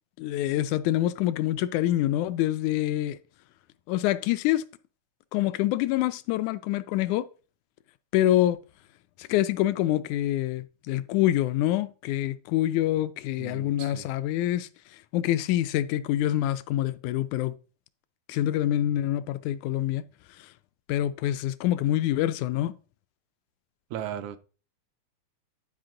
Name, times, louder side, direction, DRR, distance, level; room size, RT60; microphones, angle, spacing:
voice 1, 0.2-3.2 3.9-4.6 5.3-7.3 8.1-8.6 9.2-14.7 15.1-17.5 18.3-20.0 20.9-22.7, left 13 dB, 85° left, 1.9 m, -26 dB
voice 2, 13.4-14.1 23.9-24.4, right 10 dB, 85° right, 2.2 m, -36 dB
10.5 x 5.1 x 3.8 m
omnidirectional pair, 3.4 m